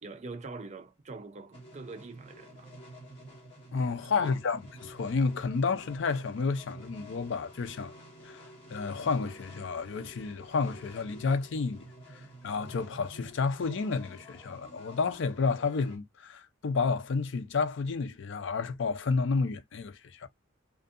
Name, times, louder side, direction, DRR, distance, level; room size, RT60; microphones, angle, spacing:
voice 1, 0.0-2.7 4.2-4.4, right 3 dB, 35° right, 0.5 m, -44 dB
sound 1, 1.5-16.0, right 1 dB, 30° left, 1.5 m, -50 dB
voice 2, 3.7-7.9 8.2-8.4 8.7-11.9 12.4-20.3, left 4 dB, 65° left, 0.5 m, -30 dB
2.6 x 2.4 x 2.5 m
head